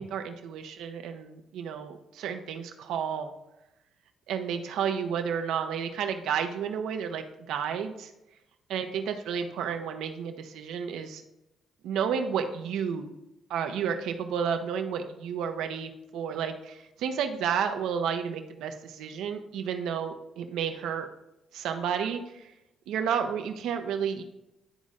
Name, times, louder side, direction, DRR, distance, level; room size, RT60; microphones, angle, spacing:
voice 1, 0.0-3.3 4.3-8.1 8.7-11.2 11.8-13.1 13.5-21.1 21.5-22.5 22.9-24.2, right 7 dB, 80° right, 6 dB, 0.8 m, -31 dB
11.5 x 4.0 x 2.5 m, 0.91 s
supercardioid pair, 65°, 0 cm